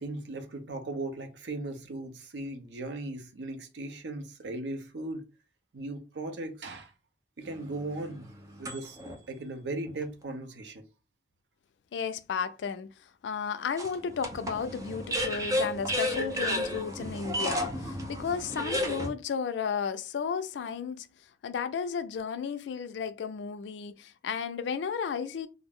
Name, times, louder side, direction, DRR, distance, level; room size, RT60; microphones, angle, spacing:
voice 1, 0.0-5.3 5.7-6.9 7.4-9.0 9.3-10.8, right 2 dB, 80° right, 0.6 m, -38 dB
sound 1, 7.5-9.2 9.9-10.0 13.8-19.1, equal, 20° right, 0.5 m, -32 dB
voice 2, 11.9-12.9 13.2-21.1 21.4-25.5, left 6 dB, 85° left, 0.3 m, -33 dB
2.4 x 2.0 x 3.5 m
head